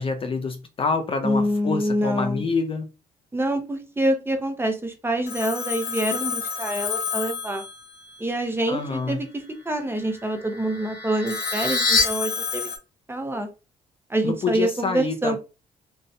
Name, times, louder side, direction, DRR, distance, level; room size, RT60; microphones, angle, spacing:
voice 1, 0.0-2.9 8.7-9.2 14.2-15.4, left 4 dB, 35° left, 0.4 m, -27 dB
voice 2, 1.2-2.4 3.3-7.6 8.2-12.7 13.1-13.5 14.1-15.4, right 1 dB, 15° right, 0.6 m, -26 dB
Telephone, 5.3-8.3 11.3-12.8, left 7 dB, 85° left, 0.7 m, -30 dB
sound 1, 9.8-12.0, left 4 dB, 60° left, 1.0 m, -26 dB
2.6 x 2.0 x 2.6 m
cardioid pair, 75°, 16 cm